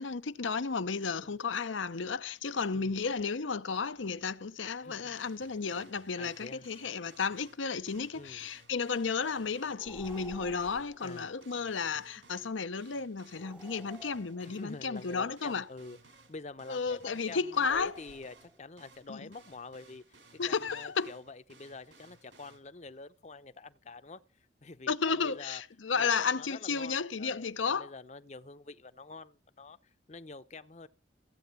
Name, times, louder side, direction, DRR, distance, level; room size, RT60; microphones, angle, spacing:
voice 1, 0.0-15.6 16.7-17.9 19.1-19.2 20.4-21.1 24.9-27.9, left 5 dB, 90° left, 0.8 m, -33 dB
voice 2, 4.8-5.2 6.2-6.7 8.1-8.5 11.0-11.3 14.4-25.6 25.9-30.9, left 3 dB, 35° left, 0.7 m, -47 dB
sound 1, 5.1-22.6, right 3 dB, 70° right, 4.5 m, -60 dB
sound 2, 9.7-11.1 13.3-14.8 17.5-18.6, right 2 dB, 5° right, 0.8 m, -52 dB
15.5 x 8.7 x 8.2 m
head